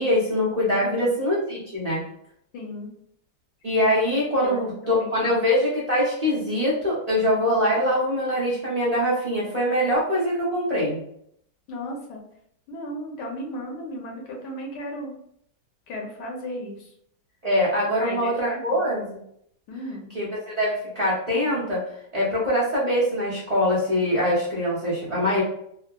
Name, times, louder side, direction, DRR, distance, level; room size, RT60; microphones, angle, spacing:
voice 1, 0.0-2.0 3.6-11.0 17.4-19.2 20.1-21.8 22.1-25.4, equal, 70° right, -8 dB, 0.3 m, -23 dB
voice 2, 0.8-1.1 2.5-2.9 4.4-5.5 11.7-12.2 12.7-15.1 15.9-16.9 18.0-18.6 19.7-20.1, left 1 dB, 75° left, 0 dB, 1.2 m, -35 dB
3.4 x 2.0 x 2.2 m, 0.70 s
omnidirectional pair, 1.9 m